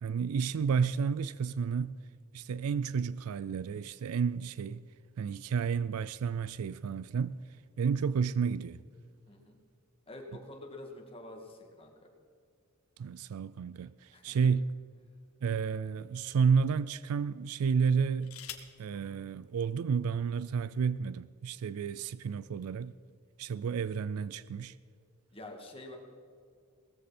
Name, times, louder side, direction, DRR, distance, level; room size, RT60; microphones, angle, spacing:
voice 1, 0.0-2.0 2.3-4.9 5.2-7.3 7.8-8.8 13.0-14.7 15.4-18.4 18.8-22.9 23.4-24.8, right 6 dB, 75° right, 0.4 m, -31 dB
voice 2, 10.1-11.9 14.1-14.5 25.3-26.0, left 1 dB, 25° left, 2.4 m, -47 dB
sound 1, 14.0-15.3 16.0-16.2 17.8-18.8 20.0-20.1 20.4-20.8, left 10 dB, 70° left, 1.3 m, -49 dB
18.5 x 14.5 x 4.3 m
head